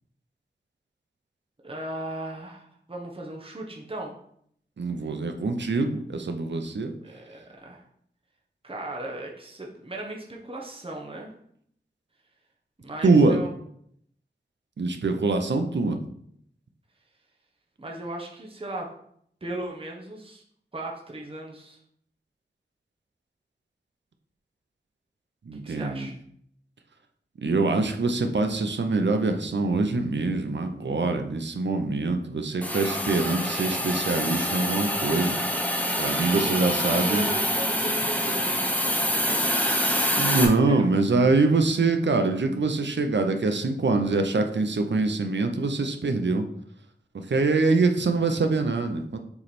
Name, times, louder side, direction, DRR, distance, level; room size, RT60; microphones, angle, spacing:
voice 1, 1.6-4.1 7.0-7.8 8.6-11.3 12.8-13.5 17.8-18.9 19.4-20.4 20.7-21.8 25.5-26.1 36.3-39.7 40.7-40.8, right 1 dB, 30° right, -1 dB, 1.0 m, -37 dB
voice 2, 4.8-7.0 13.0-13.4 14.8-16.0 25.5-26.1 27.4-35.4 36.0-37.3 40.2-46.4 47.1-49.2, right 3 dB, 80° right, 6 dB, 0.7 m, -24 dB
Hiss, 32.6-40.4, equal, 5° left, 1.0 m, -26 dB
7.1 x 3.3 x 4.2 m, 0.68 s
wide cardioid pair, 75°, 18 cm